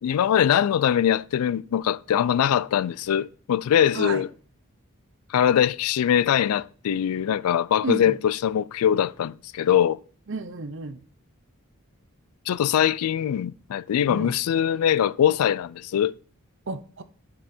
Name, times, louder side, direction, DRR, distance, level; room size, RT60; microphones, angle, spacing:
voice 1, 0.0-4.3 5.3-10.0 12.5-16.1, left 9 dB, 90° left, 0.3 m, -22 dB
voice 2, 7.8-8.1 10.3-11.0 14.1-14.4 16.7-17.0, right 3 dB, 55° right, 0.7 m, -32 dB
9.2 x 5.5 x 4.3 m
head